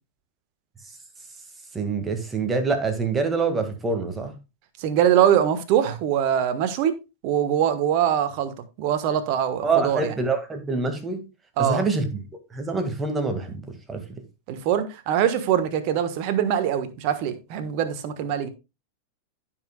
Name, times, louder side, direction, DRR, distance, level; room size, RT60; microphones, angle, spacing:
voice 1, 1.7-4.3 9.6-11.2 11.6-12.2 12.5-13.6 13.9-14.0, right 4 dB, 15° right, 1.9 m, -25 dB
voice 2, 4.8-6.9 7.2-8.5 8.8-10.1 11.6-11.8 14.5-18.5, right 9 dB, 45° right, 1.3 m, -23 dB
15.0 x 5.9 x 2.3 m
figure-of-eight pair, 90°, 0 cm